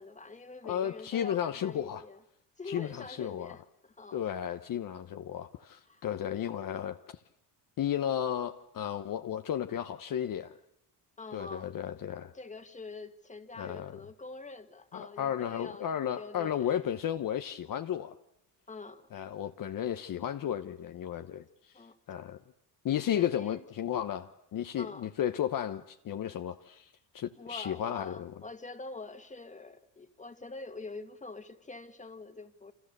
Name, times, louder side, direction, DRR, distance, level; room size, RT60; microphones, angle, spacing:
voice 1, 0.0-2.2 2.6-4.2 5.9-6.0 11.2-11.8 12.3-16.8 18.7-19.1 21.7-22.0 23.1-23.6 24.8-25.1 27.4-32.7, left 3 dB, 15° left, 2.0 m, -45 dB
voice 2, 0.6-2.0 2.7-3.5 4.1-7.0 7.8-10.6 11.3-12.3 13.6-14.0 14.9-18.1 19.1-21.4 22.1-22.4 22.8-28.3, left 10 dB, 50° left, 1.1 m, -33 dB
28.5 x 26.5 x 6.8 m
cardioid pair, 100°, 42 cm